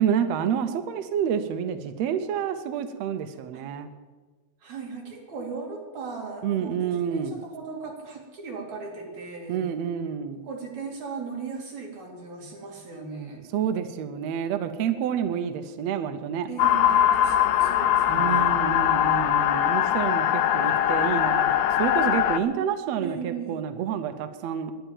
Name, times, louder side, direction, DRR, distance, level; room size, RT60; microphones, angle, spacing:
voice 1, 0.0-3.9 6.4-7.4 9.5-10.5 13.5-16.5 18.1-24.7, right 8 dB, 80° right, 9 dB, 1.5 m, -28 dB
voice 2, 4.6-9.6 10.4-13.5 16.5-18.5 23.0-23.6, right 5 dB, 55° right, -1 dB, 3.9 m, -37 dB
sound 1, 16.6-22.4, left 11 dB, 85° left, 2.4 m, -22 dB
11.5 x 10.5 x 9.1 m, 1.4 s
omnidirectional pair, 4.0 m